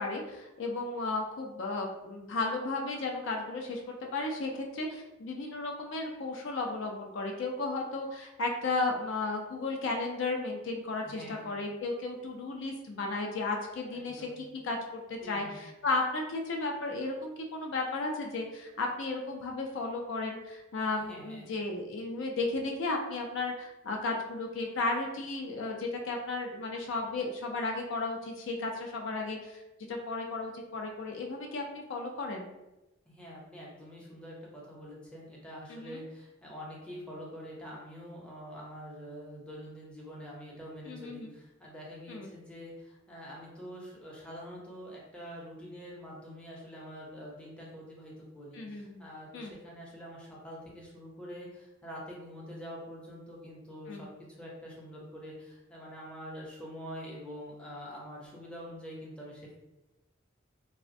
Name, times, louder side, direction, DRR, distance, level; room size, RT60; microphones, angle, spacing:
voice 1, 0.0-29.6 29.9-32.5 35.7-36.0 40.9-41.3 42.1-42.3 48.5-49.0 49.3-49.5 53.9-54.0, left 3 dB, 60° left, 1 dB, 0.4 m, -34 dB
voice 2, 11.0-11.5 13.9-14.4 15.2-15.6 20.9-21.5 33.1-54.1 54.4-59.5, equal, 5° left, -4 dB, 0.6 m, -45 dB
3.2 x 2.0 x 2.5 m, 1.0 s
head